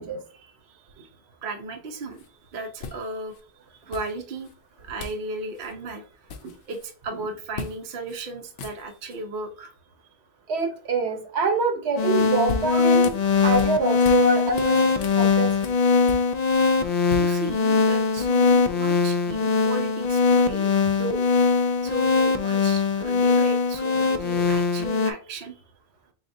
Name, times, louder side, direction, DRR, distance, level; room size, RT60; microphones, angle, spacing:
voice 1, 0.3-3.3 3.7-4.5 4.8-6.3 6.6-9.7 17.2-21.2 21.8-25.6, right 2 dB, 60° right, 3 dB, 0.8 m, -35 dB
sound 1, 2.1-2.3 2.8-3.4 3.9-4.5 5.0-5.3 5.5-5.7 6.0-6.9 7.5-7.8 8.1-8.2 8.5-9.2 12.0-14.3 14.5-16.6 16.9-18.6, left 4 dB, 70° left, 0.8 m, -38 dB
voice 2, 10.5-13.1 13.4-15.5, right 3 dB, 75° right, 5 dB, 1.1 m, -25 dB
sound 2, 12.0-25.1, left 4 dB, 55° left, 0.5 m, -21 dB
4.1 x 3.6 x 2.6 m, 0.39 s
omnidirectional pair, 1.1 m